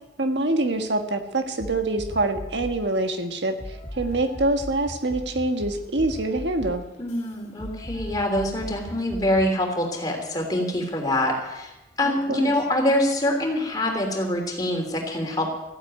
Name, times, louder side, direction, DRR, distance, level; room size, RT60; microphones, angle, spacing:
voice 1, 0.2-6.8 12.0-12.5, right 2 dB, 80° right, 6 dB, 1.5 m, -25 dB
sound 1, 1.6-2.9 3.6-9.6, equal, 40° left, 2.6 m, -38 dB
voice 2, 7.0-11.7 12.0-15.5, left 1 dB, 20° left, 1 dB, 3.2 m, -25 dB
15.0 x 9.1 x 9.2 m, 1.0 s
head